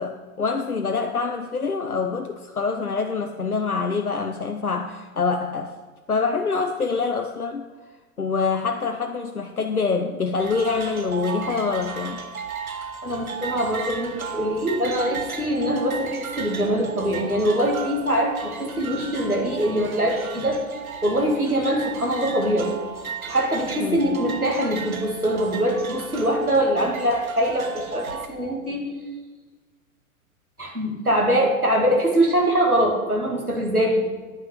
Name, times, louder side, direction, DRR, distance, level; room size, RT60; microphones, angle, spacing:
voice 1, 0.0-5.7 6.1-7.7 8.2-12.2 23.7-24.2, left 4 dB, 90° left, 4 dB, 0.8 m, -25 dB
sound 1, 10.4-28.3, right 5 dB, 75° right, 1.3 m, -35 dB
voice 2, 13.0-20.6 21.0-22.7 23.3-28.9 30.6-34.1, equal, 90° right, -1 dB, 2.5 m, -23 dB
9.7 x 5.6 x 7.8 m, 1.3 s
figure-of-eight pair, 105°, 43 cm